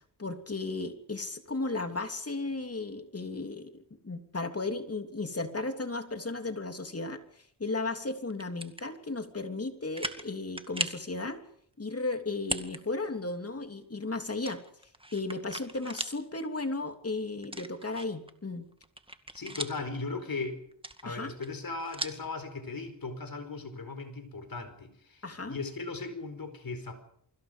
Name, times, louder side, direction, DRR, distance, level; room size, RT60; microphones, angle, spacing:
voice 1, 0.2-11.4 11.8-14.6 15.1-18.6 21.0-21.3 25.2-25.6, left 3 dB, 35° left, 6 dB, 3.1 m, -35 dB
sound 1, 8.3-8.9 9.4-9.5 9.9-10.3 10.6-11.1 12.4-12.8 13.2-13.3 14.4-16.2 16.6-16.7 17.4-18.3 18.7-20.0 20.7-22.3, right 1 dB, 10° right, 2.1 m, -38 dB
voice 2, 19.3-20.6 21.0-25.2 25.5-27.0, left 3 dB, 50° left, 9 dB, 4.8 m, -37 dB
29.0 x 24.5 x 5.3 m, 0.65 s
cardioid pair, 75°, 43 cm